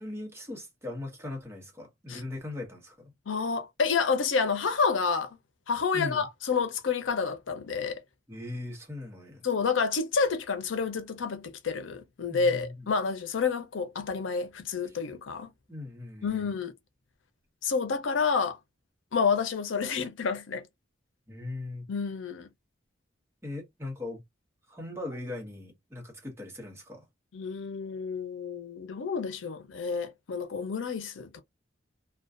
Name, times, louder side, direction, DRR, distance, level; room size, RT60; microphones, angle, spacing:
voice 1, 0.0-3.1 5.9-6.3 8.3-9.4 12.3-12.9 14.9-15.0 15.7-16.5 21.3-21.9 23.4-24.2 24.7-27.1, left 2 dB, 15° right, 0.8 m, -39 dB
voice 2, 3.3-5.4 5.7-8.0 9.4-15.5 16.2-16.7 17.6-18.6 19.1-20.6 21.9-22.5 27.3-31.4, left 5 dB, 90° left, 0.5 m, -29 dB
2.5 x 2.2 x 2.4 m
head